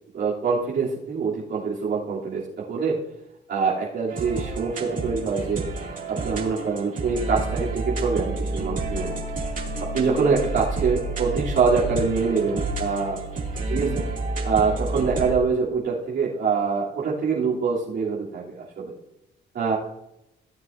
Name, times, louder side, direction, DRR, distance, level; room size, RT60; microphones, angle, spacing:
voice 1, 0.1-3.0 3.5-5.6 6.1-9.2 9.9-13.2 13.7-14.0 14.4-18.9 19.5-19.8, right 5 dB, 65° right, -8 dB, 3.1 m, -24 dB
sound 1, 4.1-15.3, right 2 dB, 45° right, 2.6 m, -30 dB
17.5 x 7.7 x 2.7 m, 0.81 s
cardioid pair, 90°, 20 cm